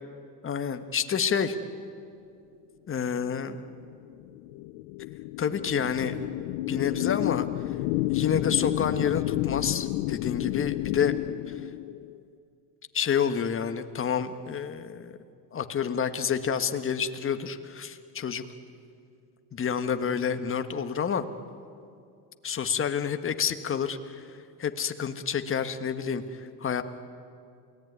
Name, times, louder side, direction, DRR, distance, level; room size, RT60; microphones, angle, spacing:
voice 1, 0.4-1.6 2.9-3.6 5.4-6.1 6.5-7.5 8.1-11.1 11.5-11.6 12.9-15.2 15.5-18.4 19.5-21.2 22.4-24.3 24.6-26.8, left 7 dB, 25° left, 9 dB, 1.5 m, -29 dB
sound 1, 3.4-12.2, left 18 dB, 70° left, 0.8 m, -30 dB
28.5 x 19.0 x 9.5 m, 2.5 s
supercardioid pair, 110°, 47 cm